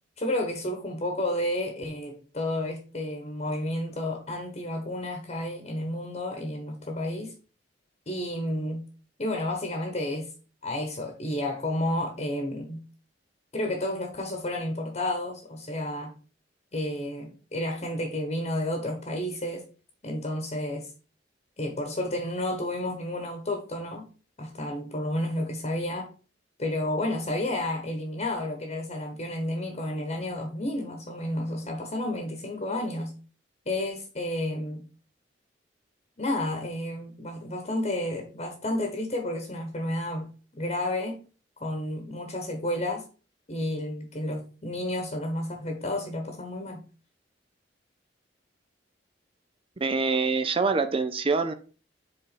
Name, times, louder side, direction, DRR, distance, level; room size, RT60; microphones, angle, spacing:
voice 1, 0.2-7.3 8.1-8.8 9.2-10.3 10.6-12.8 13.5-16.1 16.7-19.7 20.0-20.9 21.6-24.1 24.4-26.1 26.6-33.1 33.6-34.8 36.2-40.3 40.5-41.2 41.6-43.0 43.5-46.8, left 1 dB, 40° left, 1.2 m, -31 dB
voice 2, 49.8-51.5, right 4 dB, 30° right, 0.6 m, -25 dB
5.1 x 4.0 x 6.0 m
head